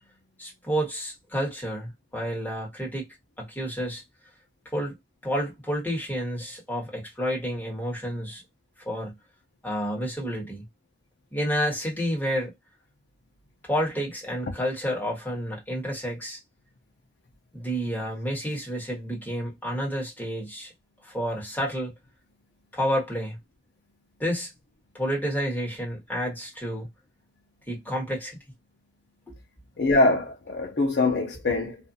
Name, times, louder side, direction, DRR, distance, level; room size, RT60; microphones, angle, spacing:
voice 1, 0.4-3.1 3.4-4.0 4.7-5.0 5.2-8.4 8.8-9.1 9.6-10.6 11.3-12.5 13.6-16.4 17.5-20.7 21.0-21.9 22.7-23.4 24.2-24.5 24.9-26.9 27.7-28.4 29.3-29.4, equal, 10° left, 1.3 m, -30 dB
voice 2, 29.8-31.8, left 2 dB, 70° left, 0.6 m, -23 dB
2.5 x 2.4 x 2.6 m
head